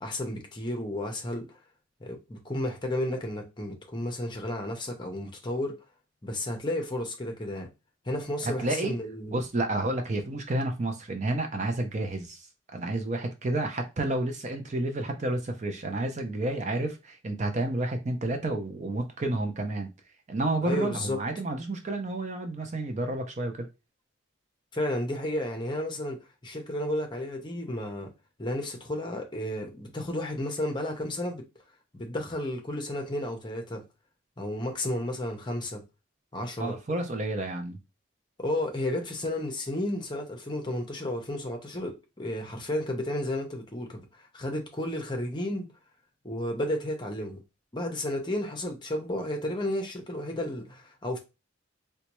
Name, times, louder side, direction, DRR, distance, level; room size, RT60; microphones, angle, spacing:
voice 1, 0.0-1.6 2.0-5.8 6.2-7.7 8.0-9.4 20.6-21.2 24.7-28.1 28.4-31.5 31.9-33.8 34.4-35.8 36.3-36.8 38.4-45.7 46.2-47.4 47.7-51.2, left 1 dB, 20° left, 0.7 m, -32 dB
voice 2, 8.4-8.9 9.3-12.5 12.7-19.9 20.3-23.7 36.6-37.8, right 2 dB, 35° right, 0.5 m, -30 dB
4.0 x 2.2 x 3.0 m
head